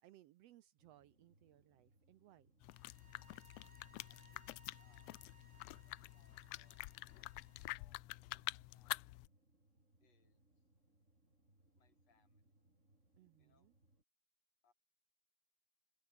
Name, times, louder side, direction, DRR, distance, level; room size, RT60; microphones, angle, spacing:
voice 1, 0.0-2.5 13.2-13.7, right 14 dB, 75° right, 1.6 m, -65 dB
sound 1, 0.8-14.0, right 1 dB, 20° right, 7.4 m, -74 dB
sound 2, 2.6-9.3, left 20 dB, 80° left, 1.5 m, -48 dB
sound 3, 2.7-7.8, right 5 dB, 55° right, 4.9 m, -69 dB
voice 2, 4.1-4.5 4.8-5.2 5.6-6.8 7.1-9.1 10.0-10.6 11.7-12.5 13.4-13.7 14.6-14.7, left 5 dB, 60° left, 4.2 m, -78 dB
omnidirectional pair, 3.4 m